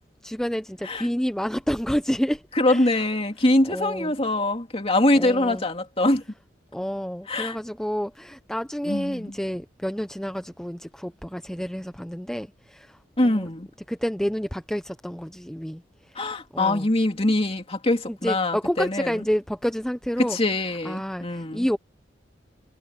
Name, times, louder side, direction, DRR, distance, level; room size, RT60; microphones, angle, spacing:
voice 1, 0.2-2.4 2.7-2.9 3.7-4.1 5.1-5.6 6.7-13.0 13.2-13.5 13.9-15.8 16.5-16.8 18.1-20.4 20.8-21.8, equal, 5° left, 0.6 m, -29 dB
voice 2, 2.5-6.2 7.3-7.6 8.8-9.4 13.2-13.7 16.1-19.2 20.2-21.7, left 1 dB, 30° left, 2.7 m, -23 dB
head